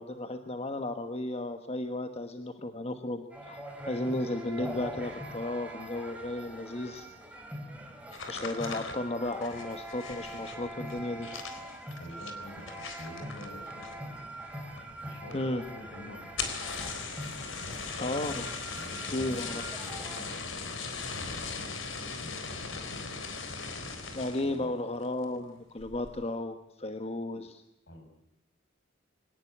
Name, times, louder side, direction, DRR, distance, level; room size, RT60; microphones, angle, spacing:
voice 1, 0.0-3.6 3.8-7.1 8.3-11.4 15.3-15.6 18.0-18.6 19.1-19.6 24.1-27.6, left 1 dB, 30° left, 7 dB, 1.3 m, -34 dB
sound 1, 3.3-20.2, right 1 dB, 5° right, 3.9 m, -43 dB
sound 2, 8.1-14.2 14.5-15.0 15.3-15.4 15.7-15.8 16.2-24.6 25.0-25.4 25.8-26.2, left 4 dB, 80° left, 3.7 m, -39 dB
voice 2, 12.0-14.2 15.0-16.4 17.3-17.8 18.7-23.2 24.4-24.7 27.9-28.1, left 1 dB, 65° left, 6 dB, 6.1 m, -47 dB
25.0 x 18.0 x 10.0 m, 0.84 s
head